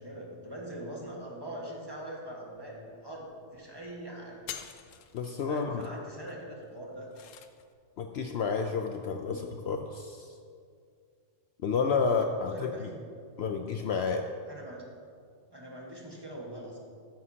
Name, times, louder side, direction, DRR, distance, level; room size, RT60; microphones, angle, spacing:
voice 1, 0.0-4.4 5.5-7.1 9.3-9.4 11.8-13.1 14.5-14.8 15.5-16.8, right 1 dB, 20° right, -3 dB, 1.5 m, -42 dB
sound 1, 2.6-2.7 2.9-3.3 3.7-4.0 4.3-7.7, left 9 dB, 85° left, 1.0 m, -47 dB
voice 2, 5.1-5.8 8.0-10.3 11.6-12.9 13.4-14.2, left 5 dB, 65° left, 5 dB, 0.7 m, -30 dB
13.0 x 9.5 x 2.8 m, 2.2 s
omnidirectional pair, 1.3 m